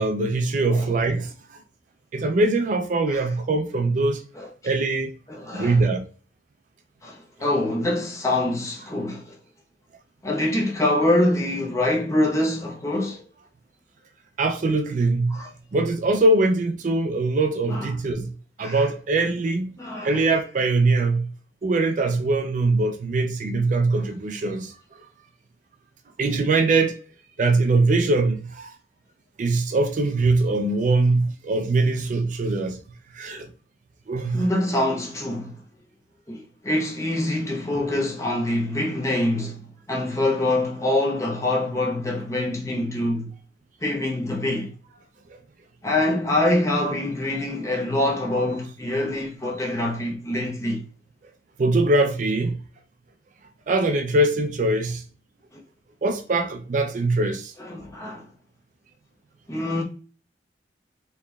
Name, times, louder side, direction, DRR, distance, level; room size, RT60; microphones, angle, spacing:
voice 1, 0.0-1.3 2.1-4.3 4.6-5.1 5.5-6.1 14.4-15.4 15.7-18.3 18.6-19.8 20.0-21.3 21.6-24.8 26.2-27.0 27.4-28.7 29.4-32.8 33.1-33.5 34.1-34.4 51.6-52.6 53.7-55.0 56.0-57.5, right 2 dB, 45° right, 0.4 m, -22 dB
voice 2, 5.3-5.8 7.0-9.4 10.2-13.3 15.3-15.5 17.7-17.9 18.6-18.9 19.8-20.2 34.3-35.6 36.3-43.3 43.8-44.7 45.8-50.8 55.5-55.6 57.6-58.2 59.5-59.8, left 1 dB, 15° left, 0.8 m, -25 dB
4.3 x 3.0 x 2.2 m
head